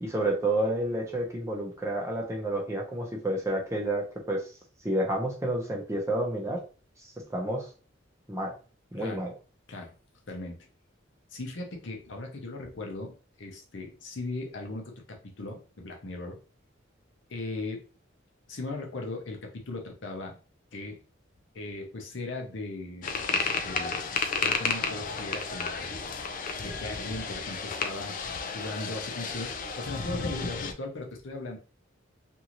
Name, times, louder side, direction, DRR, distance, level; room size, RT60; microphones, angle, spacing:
voice 1, 0.0-4.4 4.8-6.6 7.3-7.7 8.3-8.5 8.9-9.3, right 1 dB, 15° right, 0 dB, 0.6 m, -29 dB
voice 2, 10.3-10.7 11.3-16.4 17.3-17.8 18.5-20.4 20.7-21.0 21.5-24.0 24.4-26.0 26.6-28.2 28.5-29.5 29.8-31.6, left 2 dB, 65° left, 2 dB, 0.7 m, -38 dB
sound 1, 23.0-30.7, left 4 dB, 45° left, 0.4 m, -32 dB
2.6 x 2.5 x 3.0 m, 0.36 s
head